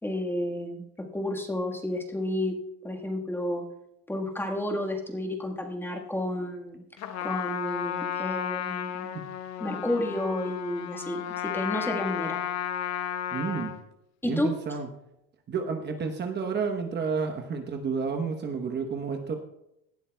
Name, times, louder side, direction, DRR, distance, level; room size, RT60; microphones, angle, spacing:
voice 1, 0.0-2.6 2.8-3.6 4.1-6.8 7.2-9.1 9.6-12.4 14.2-14.5, left 1 dB, 5° left, 2 dB, 1.5 m, -31 dB
Trumpet, 7.0-13.8, left 10 dB, 60° left, 1.0 m, -33 dB
voice 2, 13.3-13.7 14.2-14.9 15.5-19.4, right 5 dB, 35° right, 5 dB, 1.0 m, -30 dB
18.0 x 12.0 x 2.3 m, 0.82 s
cardioid pair, 125°, 31 cm